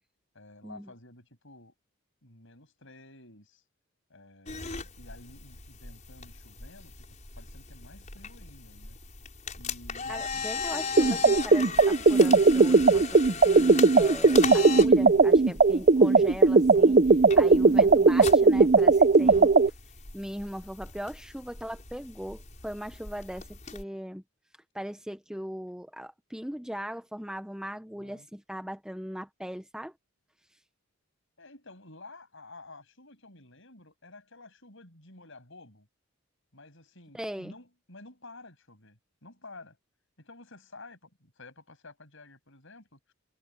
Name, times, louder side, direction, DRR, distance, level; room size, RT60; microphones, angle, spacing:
voice 1, 0.3-1.7 2.2-3.6 4.1-6.9 7.4-9.0 9.6-10.5 10.7-11.0 28.0-28.3 31.4-35.9 36.5-39.8 40.2-43.1, left 2 dB, 60° left, 7.6 m, -51 dB
sound 1, 4.5-23.8, left 5 dB, 35° left, 6.7 m, -39 dB
voice 2, 10.1-17.0 17.3-19.5 20.1-24.2 24.7-29.9 37.1-37.5, equal, 5° right, 0.8 m, -39 dB
sound 2, 11.0-19.7, right 3 dB, 40° right, 0.6 m, -18 dB
head